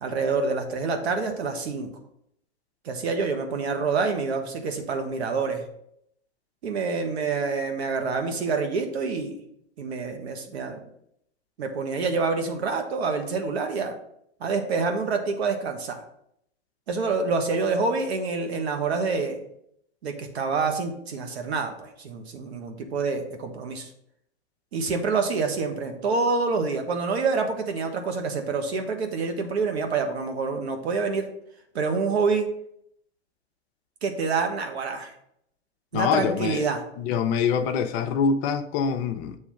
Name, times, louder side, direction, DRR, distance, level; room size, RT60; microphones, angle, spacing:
voice 1, 0.0-1.9 2.8-5.6 6.6-9.4 9.8-10.8 11.6-14.0 14.4-16.0 16.9-19.4 20.0-23.9 24.7-31.3 31.7-32.5 34.0-35.1 35.9-36.8, right 4 dB, 75° right, 1.5 m, -27 dB
voice 2, 35.9-36.6 37.0-39.4, left 6 dB, 40° left, 0.6 m, -25 dB
7.6 x 3.2 x 6.3 m
hypercardioid pair, 125°, 33 cm